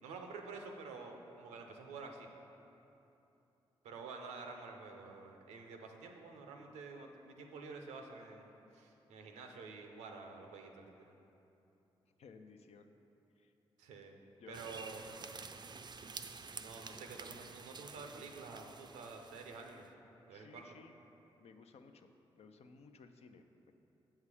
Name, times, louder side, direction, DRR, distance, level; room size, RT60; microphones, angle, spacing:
voice 1, 0.0-2.3 3.8-10.9 13.8-14.2 14.5-15.0 16.6-19.9 20.2-20.8, right 4 dB, 90° right, 3 dB, 0.6 m, -49 dB
voice 2, 12.2-12.9 13.4-13.5 14.4-14.7 20.3-21.0 21.4-23.7, left 5 dB, 65° left, 6 dB, 0.5 m, -58 dB
sound 1, 14.5-19.9, right 4 dB, 40° right, 0.4 m, -50 dB
7.5 x 5.6 x 4.8 m, 2.9 s
supercardioid pair, 45°, 12 cm